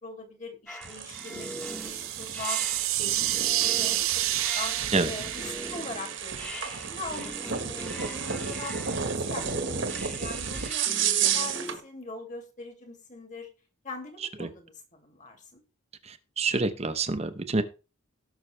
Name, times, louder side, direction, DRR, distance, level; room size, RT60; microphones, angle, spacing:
voice 1, 0.0-2.6 2.9-4.0 4.3-4.8 5.1-6.4 6.9-7.3 7.6-8.7 9.1-13.5 13.8-15.6, left 3 dB, 35° left, 4 dB, 2.7 m, -41 dB
sound 1, 0.7-11.8, equal, 5° left, 1.3 m, -42 dB
sound 2, 0.8-11.8, right 7 dB, 60° right, 1.5 m, -32 dB
sound 3, 1.1-7.0, right 15 dB, 90° right, 0.7 m, -30 dB
voice 2, 16.0-17.6, right 3 dB, 30° right, 11 dB, 0.9 m, -27 dB
18.0 x 6.2 x 3.4 m, 0.32 s
head